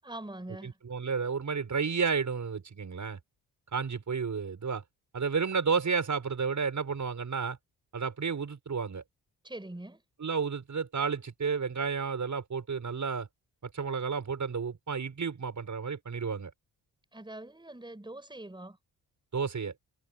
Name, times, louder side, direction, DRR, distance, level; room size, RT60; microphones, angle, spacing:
voice 1, 0.0-0.8 9.4-10.0 17.1-18.8, right 1 dB, 10° right, 6.3 m, -43 dB
voice 2, 0.6-3.2 3.7-4.8 5.1-7.6 7.9-9.0 10.2-13.3 13.6-16.5 19.3-19.7, right 5 dB, 45° right, 7.1 m, -31 dB
supercardioid pair, 65°, 40 cm